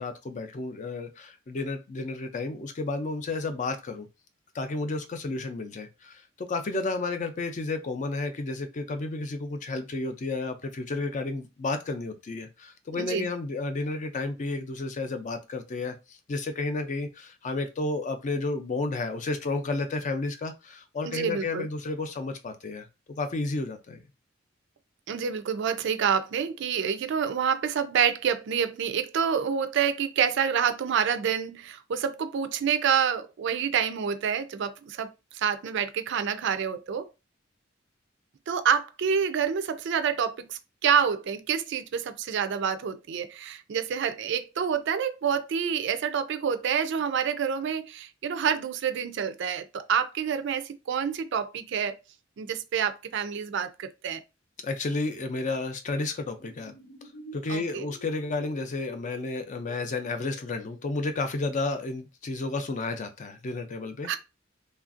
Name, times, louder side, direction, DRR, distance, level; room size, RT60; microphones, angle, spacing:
voice 1, 0.0-4.1 4.5-16.0 16.3-24.0 54.6-56.7 57.3-64.1, left 3 dB, 40° left, 0.4 m, -32 dB
voice 2, 12.9-13.3 21.0-21.7 25.1-37.1 38.5-52.0 52.4-54.2 57.5-57.9 64.0-64.2, right 7 dB, 60° right, 0.4 m, -27 dB
sound 1, 56.4-61.6, left 1 dB, 85° left, 0.7 m, -50 dB
3.1 x 2.4 x 2.5 m
head